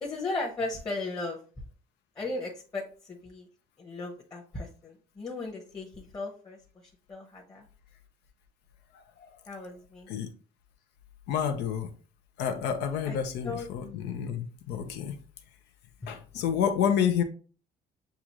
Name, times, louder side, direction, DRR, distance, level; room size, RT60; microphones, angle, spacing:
voice 1, 0.0-1.4 2.2-3.5 3.8-6.6 7.1-7.7 9.5-10.1 13.0-13.2 13.4-13.7, left 2 dB, 25° left, 1.0 m, -36 dB
voice 2, 8.9-9.4 10.1-10.3 11.3-11.9 12.4-15.1 16.1-17.2, left 8 dB, 85° left, 0.8 m, -29 dB
6.8 x 2.5 x 3.0 m
cardioid pair, 110°, 17 cm